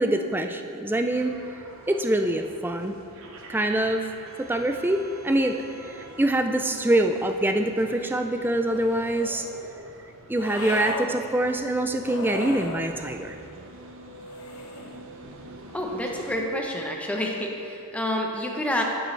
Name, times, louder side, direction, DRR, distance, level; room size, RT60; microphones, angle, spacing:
voice 1, 0.0-1.3 1.9-3.0 3.5-4.1 4.4-5.6 5.9-9.9 10.3-13.4, right 1 dB, 10° right, 6 dB, 0.3 m, -25 dB
sound 1, 1.1-16.4, right 2 dB, 60° right, 0.8 m, -45 dB
sound 2, 8.6-9.5 10.3-11.1 12.0-12.9 14.2-15.0, left 3 dB, 65° left, 0.8 m, -36 dB
voice 2, 15.7-18.8, left 1 dB, 5° left, 0 dB, 0.7 m, -28 dB
10.5 x 7.7 x 3.2 m, 2.6 s
head